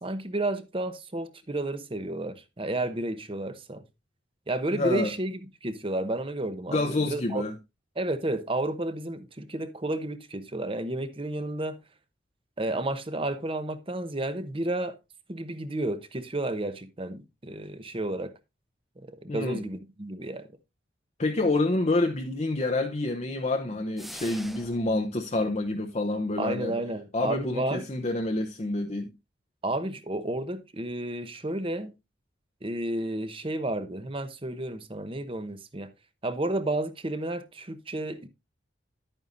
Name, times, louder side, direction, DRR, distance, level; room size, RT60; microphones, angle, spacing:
voice 1, 0.0-3.8 4.5-7.4 8.0-11.8 12.6-15.0 15.3-18.3 19.0-20.5 26.4-27.8 29.6-31.9 32.6-35.9 36.2-38.3, right 1 dB, 30° right, 0.8 m, -31 dB
voice 2, 4.7-5.1 6.7-7.5 19.3-19.6 21.2-26.7 27.1-29.1, left 2 dB, 35° left, 0.7 m, -28 dB
sound 1, 24.0-25.0, equal, ahead, 0.4 m, -43 dB
11.0 x 8.9 x 2.6 m
head